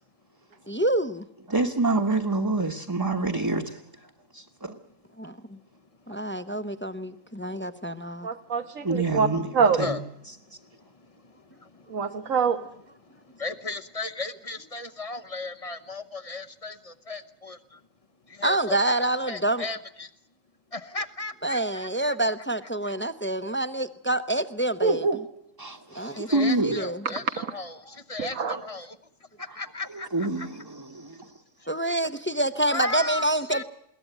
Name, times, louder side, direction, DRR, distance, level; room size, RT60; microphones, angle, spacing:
voice 1, 0.7-1.2 5.2-5.6 6.1-8.3 18.4-19.7 21.4-25.1 25.9-27.0 31.7-33.6, right 1 dB, 10° left, 0.6 m, -27 dB
voice 2, 1.5-3.8 4.3-4.8 8.8-10.0 25.6-26.8 28.5-28.6 29.5-29.6 29.9-30.6, right 2 dB, 20° right, 1.1 m, -27 dB
voice 3, 8.2-9.3 9.5-9.8 11.9-12.6 24.8-25.2 27.3-27.5 28.2-28.6, right 5 dB, 90° right, 1.6 m, -24 dB
voice 4, 13.3-17.8 18.3-19.0 19.3-20.1 20.7-21.9 26.0-29.0 29.4-30.3 32.7-33.6, left 3 dB, 30° left, 0.9 m, -35 dB
21.5 x 18.0 x 9.1 m
omnidirectional pair, 1.3 m